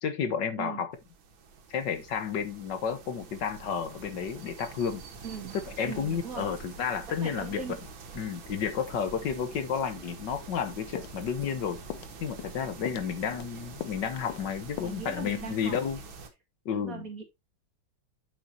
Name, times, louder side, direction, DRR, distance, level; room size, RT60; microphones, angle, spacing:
voice 1, 0.0-0.9 1.7-5.0 5.8-7.6 8.1-11.8 12.2-16.0 16.6-17.1, left 7 dB, 65° left, 1.7 m, -31 dB
sound 1, 0.9-16.3, right 5 dB, 80° right, 2.3 m, -46 dB
voice 2, 5.2-5.6 5.8-6.5 7.1-7.8 14.8-15.8 16.7-17.2, right 5 dB, 45° right, 2.3 m, -39 dB
sound 2, 11.0-11.6 11.9-12.1 12.4-12.6 12.9-13.5 13.8-14.0 14.3-14.5 14.8-15.0 15.3-15.4 15.7-15.9, left 13 dB, 85° left, 1.4 m, -40 dB
8.7 x 6.8 x 2.8 m
omnidirectional pair, 2.1 m